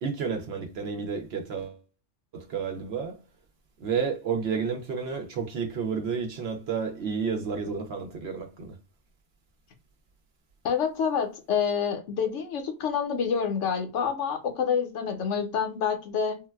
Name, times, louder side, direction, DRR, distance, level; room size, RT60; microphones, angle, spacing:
voice 1, 0.0-1.8 2.3-3.2 3.8-8.8, right 6 dB, 65° right, 0.7 m, -31 dB
voice 2, 10.6-16.4, left 7 dB, 75° left, 0.9 m, -27 dB
3.7 x 2.1 x 2.2 m
omnidirectional pair, 1.3 m